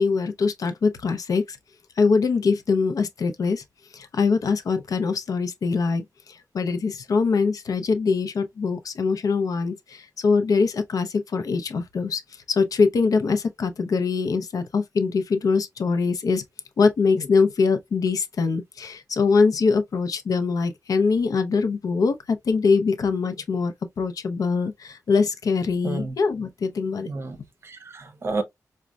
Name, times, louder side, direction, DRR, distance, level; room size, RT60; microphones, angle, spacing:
voice 1, 0.0-1.6 2.0-3.6 3.9-12.2 12.5-16.4 16.8-27.1, left 4 dB, 70° left, 0.5 m, -23 dB
voice 2, 25.8-26.1 27.1-28.4, right 3 dB, 40° right, 0.7 m, -31 dB
5.0 x 2.2 x 2.3 m
wide cardioid pair, 165°, 6 cm